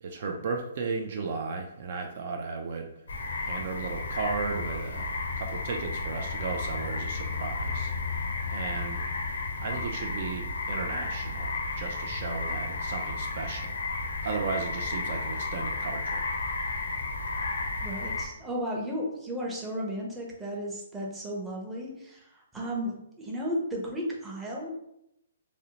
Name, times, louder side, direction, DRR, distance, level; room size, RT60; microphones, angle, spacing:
voice 1, 0.0-2.9 3.4-7.9 8.5-9.0 9.6-11.5 11.8-13.8 14.2-16.3, right 4 dB, 55° right, 3 dB, 0.3 m, -35 dB
sound 1, 3.1-18.3, left 3 dB, 85° left, 0.5 m, -33 dB
voice 2, 17.8-24.7, equal, 10° right, -3 dB, 0.6 m, -34 dB
2.6 x 2.0 x 2.8 m, 0.80 s
hypercardioid pair, 145°, 0 cm